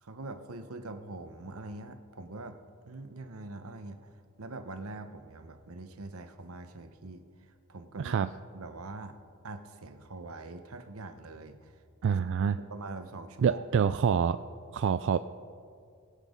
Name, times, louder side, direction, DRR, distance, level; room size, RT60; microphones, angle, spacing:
voice 1, 0.0-2.6 2.9-4.1 4.4-7.2 7.7-8.2 8.5-9.2 9.4-11.7 12.1-12.2 12.7-13.9, right 2 dB, 85° right, 8 dB, 1.0 m, -43 dB
voice 2, 8.0-8.3 12.0-12.6 13.4-14.4 14.7-15.2, right 7 dB, 60° right, 11 dB, 0.3 m, -26 dB
20.0 x 8.4 x 5.3 m, 2.3 s
head